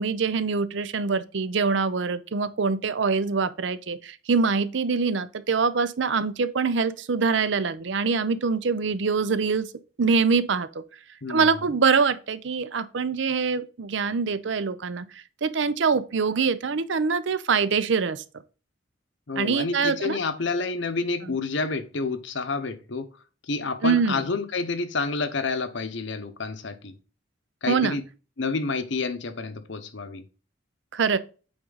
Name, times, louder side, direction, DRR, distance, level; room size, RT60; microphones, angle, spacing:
voice 1, 0.0-9.7 10.0-10.8 11.3-18.2 19.4-20.2 23.8-24.2 27.7-28.0 30.9-31.2, right 5 dB, 65° right, 0.5 m, -24 dB
voice 2, 11.2-11.7 19.3-23.1 23.4-27.0 27.6-28.0 28.4-30.2, left 4 dB, 70° left, 0.9 m, -29 dB
8.7 x 3.9 x 3.9 m
head